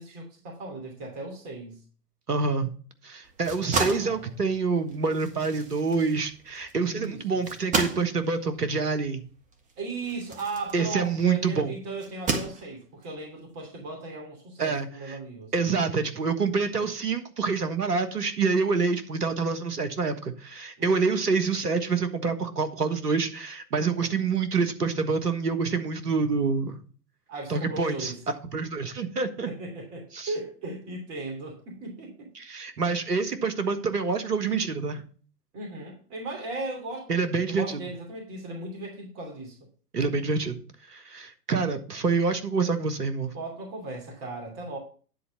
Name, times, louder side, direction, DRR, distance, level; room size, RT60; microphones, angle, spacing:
voice 1, 0.0-1.8 3.6-4.4 6.9-7.5 9.8-15.5 20.8-21.2 27.3-28.2 29.4-32.3 35.5-37.2 37.5-39.6 43.3-44.8, right 2 dB, 35° right, 2 dB, 2.9 m, -37 dB
voice 2, 2.3-2.7 3.0-9.2 10.7-11.7 14.6-15.2 15.5-26.8 27.5-28.1 28.5-29.5 30.1-30.3 32.4-35.0 37.1-37.8 39.9-40.6 40.9-43.3, right 4 dB, 80° right, 9 dB, 1.5 m, -27 dB
sound 1, 3.2-11.3 12.0-13.0, right 4 dB, 15° right, 1.4 m, -33 dB
10.0 x 4.2 x 7.1 m, 0.42 s
figure-of-eight pair, 110°, 47 cm